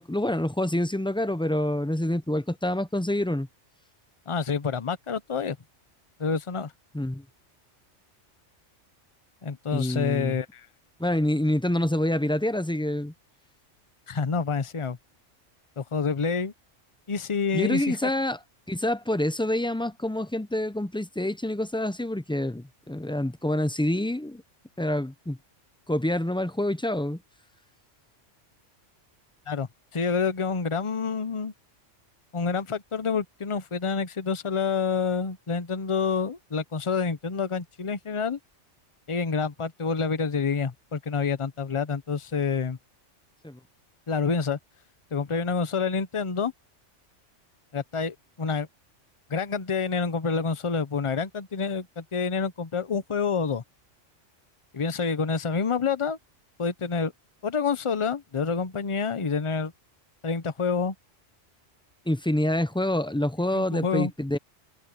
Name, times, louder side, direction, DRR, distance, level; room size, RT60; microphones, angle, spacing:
voice 1, 0.0-3.5 6.9-7.2 9.7-10.4 11.0-13.1 17.5-18.4 18.7-24.4 24.8-25.4 25.9-27.2 43.4-43.6 62.1-64.4, left 1 dB, 10° left, 0.3 m, -27 dB
voice 2, 4.3-5.6 6.2-6.7 9.4-10.7 14.1-15.0 15.8-16.5 17.1-18.0 29.5-29.7 29.9-31.5 32.3-38.4 39.1-42.8 44.1-44.6 45.1-46.5 47.7-48.7 49.3-53.6 54.7-56.2 56.6-57.1 57.4-59.7 60.2-60.9 63.5-64.1, left 5 dB, 30° left, 0.8 m, -28 dB
omnidirectional pair, 1.2 m